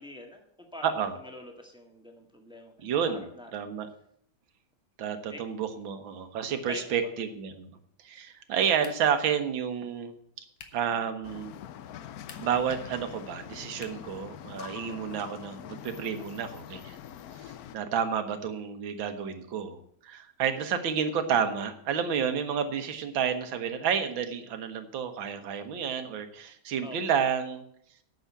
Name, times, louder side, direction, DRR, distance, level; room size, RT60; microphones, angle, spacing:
voice 1, 0.0-3.5 5.3-5.4 6.7-7.1 26.8-27.0, left 2 dB, 5° right, 2 dB, 1.4 m, -45 dB
voice 2, 0.8-1.2 2.8-3.9 5.0-7.7 8.0-10.1 10.7-11.5 12.4-17.0 17.5-27.6, right 7 dB, 70° right, 8 dB, 1.9 m, -30 dB
sound 1, 8.8-9.3 10.5-10.9 12.1-12.7 13.8-14.2, left 5 dB, 50° left, 1.6 m, -49 dB
sound 2, 11.2-17.8, left 10 dB, 85° left, 0.8 m, -44 dB
9.2 x 6.5 x 8.4 m, 0.67 s
omnidirectional pair, 2.3 m